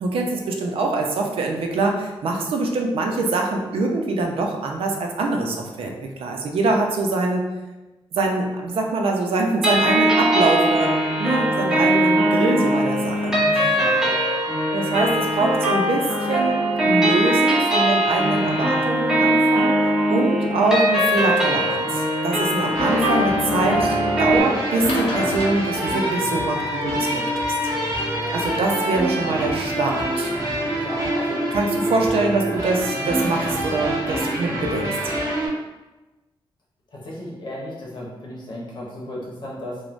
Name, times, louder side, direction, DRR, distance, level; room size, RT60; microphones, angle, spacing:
voice 1, 0.0-5.9 6.2-7.4 8.1-13.4 14.7-19.8 20.1-27.3 28.3-30.3 31.5-34.9, right 3 dB, 80° right, 2 dB, 0.4 m, -24 dB
sound 1, 9.6-24.4, right 1 dB, 5° right, 0.6 m, -21 dB
voice 2, 13.4-14.2 30.8-31.4 32.8-33.1 36.9-39.8, left 1 dB, 55° left, -5 dB, 0.8 m, -35 dB
sound 2, 21.6-21.8 22.5-23.2 24.7-26.7 28.3-28.8 29.5-29.6 30.2-30.3 30.6-30.7 30.9-31.0, left 2 dB, 90° left, 0.4 m, -33 dB
sound 3, 22.7-35.5, equal, 30° right, 1.2 m, -25 dB
3.1 x 2.0 x 2.4 m, 1.1 s
wide cardioid pair, 125°, 9 cm